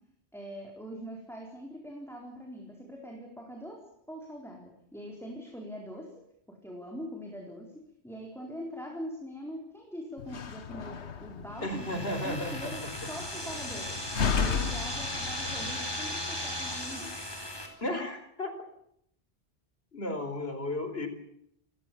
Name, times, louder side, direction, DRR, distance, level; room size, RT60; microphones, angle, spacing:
voice 1, 0.3-6.1 6.5-13.9 14.3-17.2, equal, ahead, 0 dB, 4.4 m, -42 dB
Slam, 10.2-15.8, left 6 dB, 85° left, 1.6 m, -34 dB
voice 2, 11.6-12.9 17.8-18.5 19.9-21.1, left 1 dB, 65° left, 8 dB, 4.6 m, -34 dB
sound 1, 11.6-17.7, left 1 dB, 20° left, 4.7 m, -37 dB
30.0 x 17.0 x 7.1 m, 0.72 s
omnidirectional pair, 1.1 m